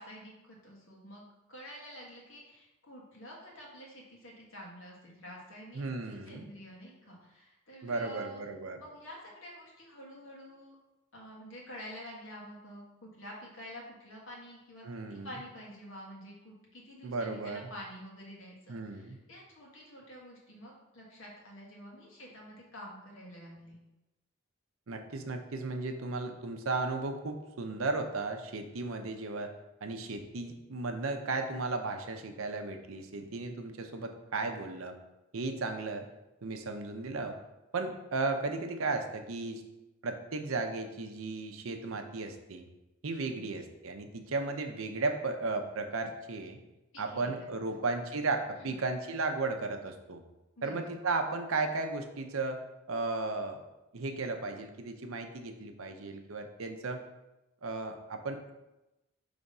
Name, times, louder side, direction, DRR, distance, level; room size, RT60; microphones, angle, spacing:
voice 1, 0.0-5.8 6.1-8.4 8.8-10.7 11.1-23.8 43.2-43.4 46.9-47.5 48.6-48.8 50.6-50.9, equal, 70° left, -3 dB, 1.7 m, -48 dB
voice 2, 5.7-6.5 7.8-8.8 14.8-15.3 17.0-17.7 18.7-19.2 24.9-29.5 29.8-34.9 35.3-36.1 36.4-37.4 37.7-39.6 40.0-42.6 43.0-46.6 47.0-50.2 50.6-52.6 52.9-53.6 53.9-57.0 57.6-58.4, right 3 dB, 80° right, 6 dB, 0.7 m, -35 dB
5.0 x 3.4 x 5.4 m, 0.98 s
head